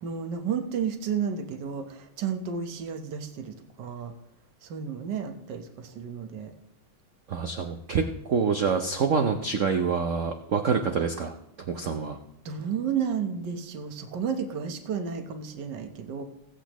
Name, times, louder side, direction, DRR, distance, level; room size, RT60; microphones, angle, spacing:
voice 1, 0.0-4.1 4.6-6.5 12.4-16.2, right 7 dB, 60° right, 6 dB, 1.6 m, -32 dB
voice 2, 7.3-11.3 11.7-12.2, right 5 dB, 80° right, 6 dB, 0.6 m, -26 dB
18.0 x 8.2 x 3.0 m, 0.78 s
omnidirectional pair, 2.3 m